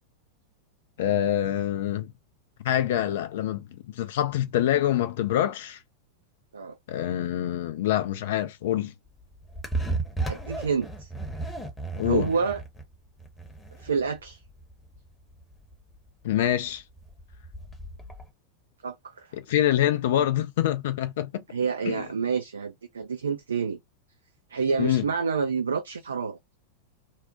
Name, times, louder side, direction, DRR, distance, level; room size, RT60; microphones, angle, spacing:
voice 1, 1.0-2.1 2.6-5.8 6.9-8.9 12.0-12.3 16.2-16.8 19.5-21.4 21.9-22.0 24.8-25.0, left 12 dB, 55° left, 0.4 m, -25 dB
sound 1, 9.1-18.3, right 3 dB, 5° left, 0.8 m, -35 dB
voice 2, 10.2-11.1 12.0-12.6 13.8-14.4 18.8-19.3 21.5-23.8 24.5-26.4, right 5 dB, 70° right, 0.3 m, -28 dB
2.6 x 2.0 x 2.5 m
figure-of-eight pair, 90°, 0 cm